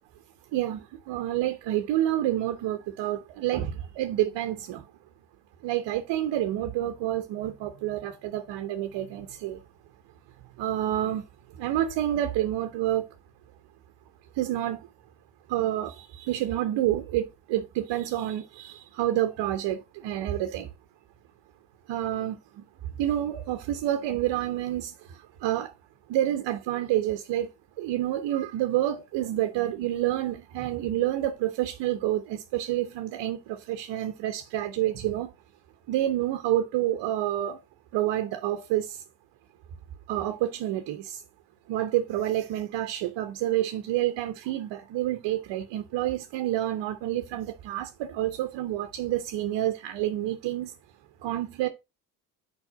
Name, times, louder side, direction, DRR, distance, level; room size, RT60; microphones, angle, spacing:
voice 1, 0.5-4.8 5.6-9.6 10.6-11.2 11.6-13.0 14.4-14.8 15.5-20.7 21.9-22.4 23.0-24.9 25.4-25.7 26.1-27.5 27.8-35.3 35.9-37.6 37.9-39.0 40.1-41.2 41.7-50.7 51.2-51.7, right 13 dB, 70° right, 1.0 m, -28 dB
5.0 x 4.4 x 6.1 m
supercardioid pair, 65°, 43 cm